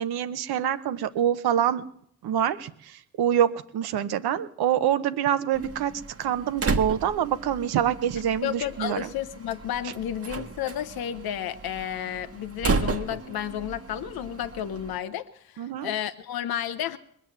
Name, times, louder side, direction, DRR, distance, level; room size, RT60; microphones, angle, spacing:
voice 1, 0.0-1.8 2.2-5.9 6.2-9.1 15.6-15.9, right 10 dB, 80° right, 13 dB, 0.8 m, -26 dB
Slam, 5.5-15.0, right 3 dB, 40° right, 1.1 m, -34 dB
voice 2, 8.4-17.0, left 10 dB, 70° left, 11 dB, 0.7 m, -32 dB
20.5 x 7.7 x 7.8 m, 0.66 s
supercardioid pair, 45°, 38 cm